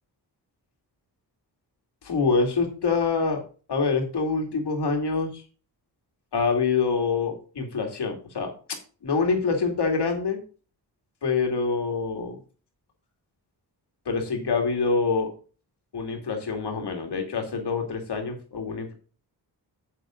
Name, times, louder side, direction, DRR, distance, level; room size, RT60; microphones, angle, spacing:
voice 1, 2.0-3.4 3.7-5.4 6.3-10.4 11.2-12.4 14.1-15.3 15.9-18.9, left 4 dB, 70° left, 3 dB, 2.8 m, -26 dB
9.6 x 7.7 x 3.9 m, 0.37 s
wide cardioid pair, 110°, 41 cm